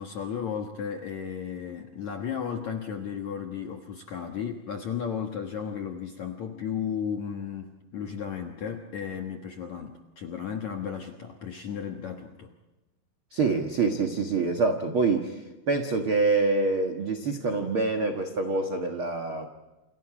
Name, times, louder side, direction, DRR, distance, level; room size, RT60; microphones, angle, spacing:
voice 1, 0.0-12.5, left 7 dB, 65° left, 3 dB, 1.8 m, -34 dB
voice 2, 13.3-19.5, right 3 dB, 90° right, 4 dB, 1.1 m, -26 dB
29.0 x 28.5 x 5.0 m, 1.1 s
omnidirectional pair, 5.3 m